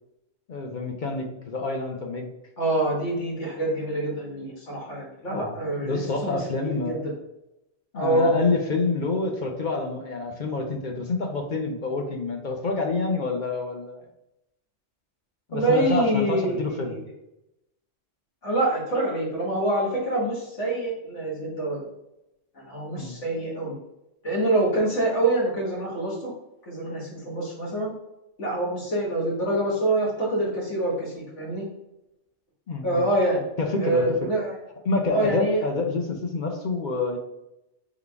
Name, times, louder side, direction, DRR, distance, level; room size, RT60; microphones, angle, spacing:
voice 1, 0.5-2.3 5.3-5.6 5.8-7.1 7.9-14.0 15.5-17.0 22.9-23.2 32.7-33.1 33.6-34.0 34.8-37.2, left 3 dB, 50° left, 3 dB, 0.7 m, -27 dB
voice 2, 2.6-7.1 7.9-8.4 15.5-17.0 18.4-21.9 22.6-23.7 24.2-26.3 26.7-27.9 28.4-31.6 32.8-33.4 33.8-34.5 35.1-35.6, right 1 dB, 75° left, -5 dB, 2.0 m, -26 dB
3.8 x 3.5 x 3.5 m, 0.89 s
omnidirectional pair, 1.2 m